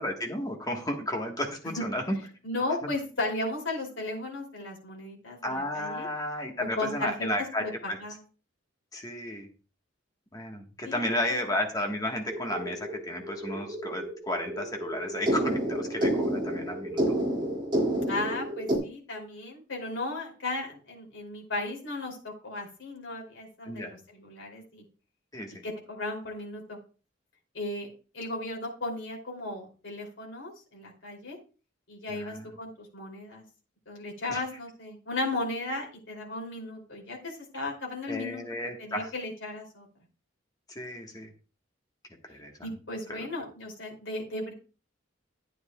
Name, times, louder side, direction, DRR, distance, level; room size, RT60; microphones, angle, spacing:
voice 1, 0.0-2.2 5.4-8.0 8.9-9.5 10.3-17.1 23.6-23.9 25.3-25.6 32.1-32.5 34.3-34.4 38.1-39.1 40.7-41.3 42.2-42.5 43.1-43.3, left 1 dB, 20° left, 2 dB, 1.4 m, -33 dB
voice 2, 2.4-6.1 6.6-7.3 7.6-8.2 10.8-11.4 18.1-24.8 25.6-26.8 27.5-27.9 28.1-31.4 31.9-33.4 33.9-38.4 38.8-39.9 42.6-44.5, left 2 dB, 75° left, 0 dB, 3.0 m, -35 dB
sound 1, 12.3-18.8, right 1 dB, 25° right, 2.4 m, -30 dB
11.0 x 9.4 x 2.3 m, 0.35 s
head